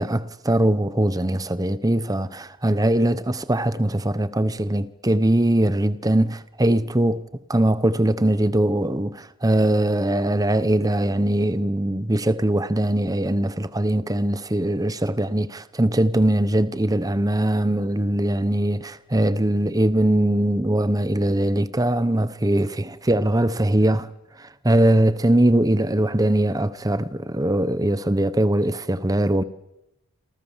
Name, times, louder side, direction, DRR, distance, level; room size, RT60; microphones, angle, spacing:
voice 1, 0.0-7.2 7.5-24.1 24.4-29.4, right 1 dB, 15° right, 0.9 m, -21 dB
28.0 x 28.0 x 7.4 m
head